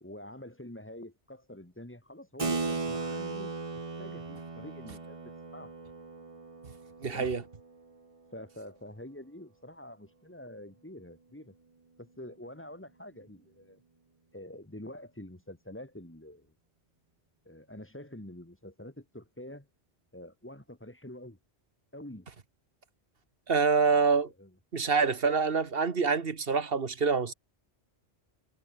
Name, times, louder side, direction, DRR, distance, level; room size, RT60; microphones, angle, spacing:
voice 1, 0.0-5.8 7.1-7.4 8.3-11.5 12.0-13.8 14.3-16.5 17.5-19.7 20.1-21.4 21.9-22.3 23.8-24.5, left 1 dB, 10° left, 2.2 m, -47 dB
Keyboard (musical), 2.4-8.4, right 4 dB, 30° right, 1.2 m, -37 dB
voice 2, 7.0-7.4 23.5-24.3 24.7-27.3, right 5 dB, 60° right, 1.7 m, -26 dB
omnidirectional pair, 1.1 m